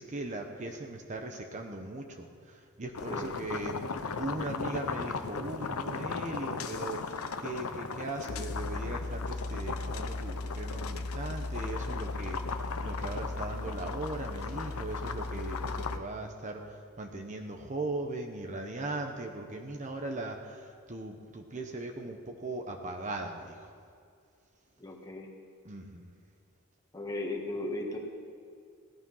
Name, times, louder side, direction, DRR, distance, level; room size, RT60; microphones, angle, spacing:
voice 1, 0.0-3.8 4.2-23.7 25.6-26.1, right 2 dB, 35° right, 3 dB, 1.0 m, -39 dB
sound 1, 2.9-16.0, left 3 dB, 85° left, 0.8 m, -36 dB
voice 2, 3.1-3.5 24.8-25.3 26.9-28.0, left 2 dB, 15° left, 0 dB, 1.7 m, -36 dB
16.5 x 11.5 x 5.7 m, 2.3 s
head